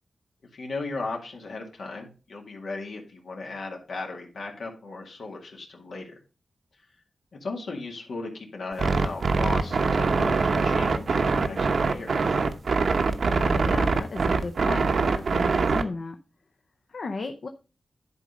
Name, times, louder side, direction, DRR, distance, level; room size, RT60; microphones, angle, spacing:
voice 1, 0.5-6.1 7.4-12.4, left 3 dB, 80° left, 0 dB, 2.0 m, -36 dB
sound 1, 8.8-15.8, right 4 dB, 70° right, 0.8 m, -23 dB
voice 2, 13.3-16.2 16.9-17.5, left 3 dB, 60° left, 6 dB, 0.7 m, -34 dB
10.5 x 4.0 x 5.2 m, 0.33 s
wide cardioid pair, 95°, 0 cm